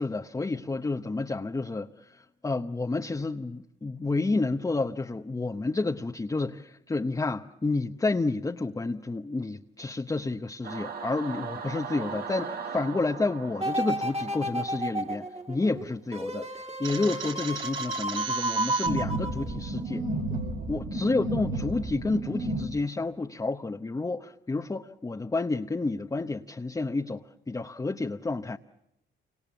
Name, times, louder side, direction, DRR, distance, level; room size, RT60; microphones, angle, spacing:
voice 1, 0.0-20.0 20.7-28.6, left 3 dB, 15° left, 0.9 m, -30 dB
Singing / Musical instrument, 10.6-15.3, right 6 dB, 50° right, 1.8 m, -39 dB
sound 1, 13.6-19.8 20.3-20.4, right 1 dB, 30° right, 2.3 m, -32 dB
sound 2, 16.8-22.6, right 2 dB, 75° right, 3.8 m, -32 dB
29.0 x 26.5 x 7.1 m
cardioid pair, 90°, 20 cm